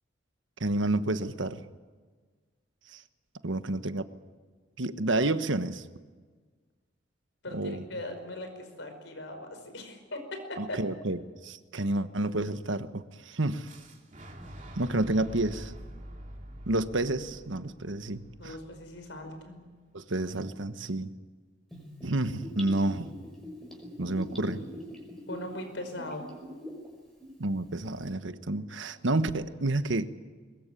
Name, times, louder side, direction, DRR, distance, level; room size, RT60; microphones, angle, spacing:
voice 1, 0.6-1.6 2.9-3.0 3.4-4.1 4.8-5.8 7.5-7.9 10.6-13.7 14.7-15.7 16.7-18.6 19.9-21.1 22.0-23.2 24.0-24.6 27.4-30.1, right 2 dB, 85° right, 11 dB, 1.2 m, -30 dB
voice 2, 7.4-10.8 18.4-19.6 25.3-26.3, left 1 dB, 75° left, 6 dB, 5.2 m, -39 dB
Fire / Explosion, 13.6-19.5, equal, 40° right, 2.8 m, -46 dB
Gurgling / Bathtub (filling or washing), 21.7-26.9 27.2-27.3, equal, ahead, 5.7 m, -43 dB
22.5 x 21.0 x 8.4 m, 1.4 s
head